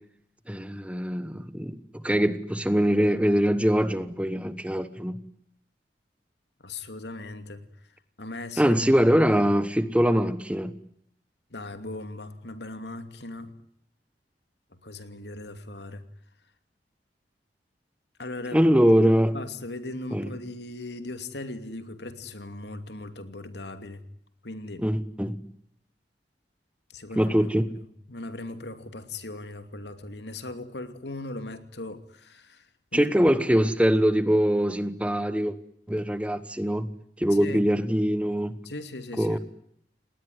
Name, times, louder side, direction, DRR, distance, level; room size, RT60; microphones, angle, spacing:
voice 1, 0.5-5.2 8.6-10.7 18.5-19.3 20.1-20.3 24.8-25.4 27.2-27.7 32.9-35.5 35.9-36.9 37.2-38.6 39.2-39.4, equal, 5° right, 1.2 m, -23 dB
voice 2, 6.6-7.6 8.2-8.8 11.5-13.5 14.8-16.0 18.2-18.6 19.3-24.0 24.4-24.8 26.9-27.3 28.1-32.7 32.9-33.3 37.3-37.6 38.6-39.4, left 2 dB, 75° left, 2.6 m, -38 dB
29.0 x 19.5 x 9.5 m
head